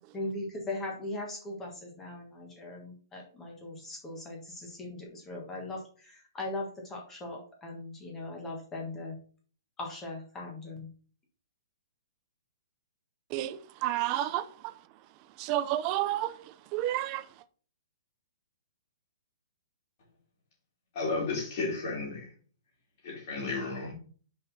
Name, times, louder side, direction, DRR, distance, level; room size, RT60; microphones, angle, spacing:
voice 1, 0.1-9.2 9.8-10.9, left 2 dB, 10° left, 1.5 m, -39 dB
voice 2, 13.3-14.8 15.4-17.3, right 13 dB, 20° right, 0.4 m, -31 dB
voice 3, 21.0-22.3 23.0-23.9, left 3 dB, 35° left, 3.2 m, -33 dB
5.7 x 5.3 x 4.1 m
hypercardioid pair, 175°, 2 cm